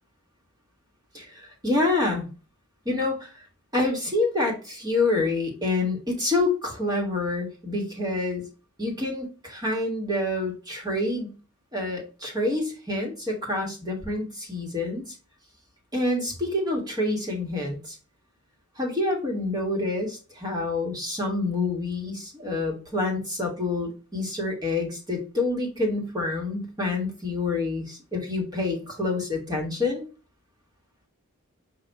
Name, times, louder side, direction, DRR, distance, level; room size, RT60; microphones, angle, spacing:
voice 1, 1.1-2.3 2.8-3.4 3.7-8.5 8.8-11.4 11.7-15.1 15.9-18.0 18.8-30.0, left 2 dB, 20° right, 0 dB, 1.3 m, -27 dB
5.2 x 2.5 x 3.3 m, 0.34 s
head